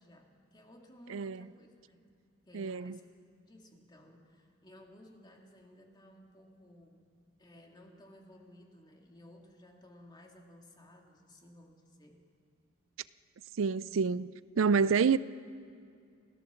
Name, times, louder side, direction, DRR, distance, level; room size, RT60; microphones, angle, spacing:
voice 1, 0.0-2.1 2.5-3.1 3.5-7.1 7.4-12.3, left 1 dB, 20° left, 2.4 m, -57 dB
voice 2, 1.1-1.5 2.5-3.0 13.6-15.2, right 5 dB, 85° right, 0.4 m, -28 dB
28.5 x 15.5 x 7.0 m
head